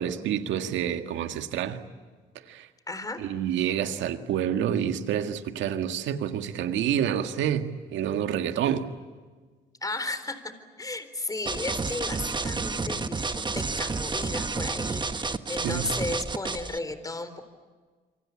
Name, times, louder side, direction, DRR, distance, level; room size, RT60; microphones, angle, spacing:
voice 1, 0.0-1.8 2.5-2.7 3.2-8.9 15.6-15.9, right 9 dB, 75° right, 1.9 m, -28 dB
voice 2, 2.9-3.2 9.8-17.4, left 2 dB, 20° left, 3.9 m, -34 dB
sound 1, 11.5-16.8, right 4 dB, 25° right, 1.2 m, -30 dB
27.5 x 24.5 x 8.6 m
supercardioid pair, 75°, 19 cm